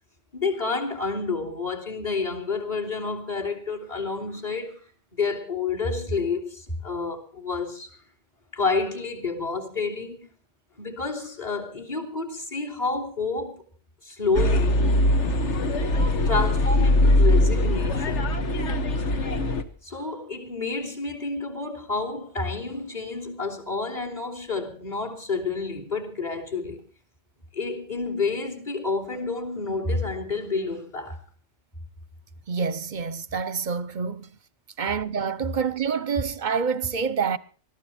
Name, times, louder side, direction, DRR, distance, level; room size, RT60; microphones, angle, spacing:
voice 1, 0.3-4.8 5.1-7.9 8.5-10.3 10.8-13.6 14.0-15.0 16.3-18.7 19.8-26.8 27.5-31.2, left 4 dB, 35° left, 3.3 m, -29 dB
sound 1, 14.3-19.6, left 1 dB, 70° left, 1.7 m, -21 dB
voice 2, 32.5-34.3 34.8-37.4, right 6 dB, 45° right, 0.9 m, -27 dB
20.0 x 14.0 x 4.3 m
omnidirectional pair, 1.2 m